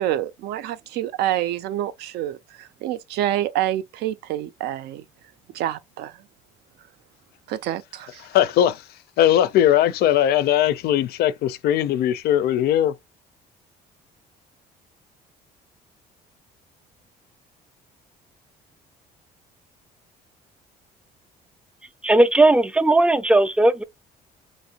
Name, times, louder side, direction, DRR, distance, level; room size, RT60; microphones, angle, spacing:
voice 1, 0.0-2.4 2.8-5.0 5.5-6.1 7.5-8.1, right 12 dB, 75° right, 0.4 m, -27 dB
voice 2, 8.2-8.8 9.2-12.9, left 11 dB, 70° left, 0.4 m, -19 dB
voice 3, 22.0-23.8, right 2 dB, 5° right, 0.3 m, -17 dB
3.1 x 2.5 x 2.8 m
cardioid pair, 110°, 17 cm